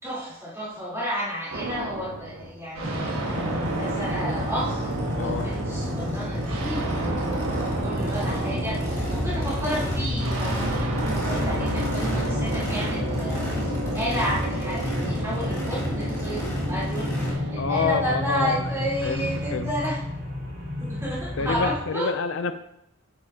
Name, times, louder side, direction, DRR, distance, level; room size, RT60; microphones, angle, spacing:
voice 1, 0.0-20.0 20.8-22.1, equal, 15° right, -8 dB, 3.6 m, -32 dB
sound 1, 1.5-19.6, right 2 dB, 90° right, 1.6 m, -32 dB
Race car auto racing / Idling / Accelerating revving vroom, 2.8-17.3, equal, 15° left, 2.2 m, -34 dB
sound 2, 2.8-21.8, left 1 dB, 60° right, 2.6 m, -31 dB
voice 2, 5.2-5.5 17.6-18.5 19.0-19.7 21.4-22.5, left 5 dB, 65° left, 10 dB, 0.5 m, -28 dB
9.7 x 8.4 x 2.8 m, 0.82 s
head